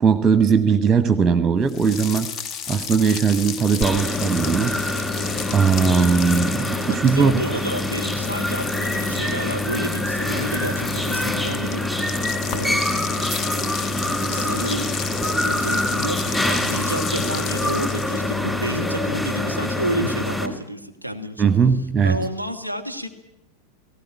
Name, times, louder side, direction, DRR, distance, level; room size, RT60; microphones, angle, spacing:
voice 1, 0.0-2.4 2.7-4.8 5.5-7.4 21.4-22.2, right 6 dB, 15° right, 12 dB, 1.0 m, -19 dB
sound 1, 1.7-18.5, left 7 dB, 30° left, 0.8 m, -33 dB
sound 2, 3.8-20.5, left 1 dB, 10° left, 4.0 m, -25 dB
voice 2, 6.9-11.8 12.5-12.9 14.3-14.9 15.5-21.5 22.0-23.1, equal, 90° left, 6 dB, 1.8 m, -30 dB
19.0 x 16.5 x 10.0 m, 0.85 s
figure-of-eight pair, 90°, 0 cm